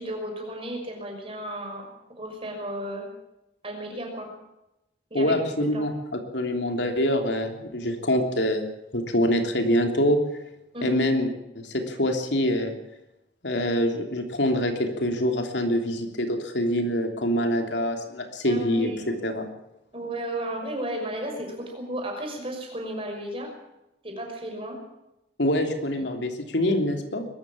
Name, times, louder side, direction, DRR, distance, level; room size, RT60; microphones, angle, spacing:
voice 1, 0.0-3.1 3.6-4.3 5.1-5.3 5.7-5.9 10.7-11.0 18.4-19.1 19.9-23.5 24.0-24.8, right 1 dB, 30° right, 2 dB, 6.0 m, -34 dB
voice 2, 5.1-8.7 8.9-10.2 10.8-11.3 11.5-12.7 13.4-18.9 19.2-19.5 25.4-27.3, equal, 75° left, 4 dB, 3.2 m, -25 dB
22.0 x 14.0 x 8.7 m, 0.90 s
head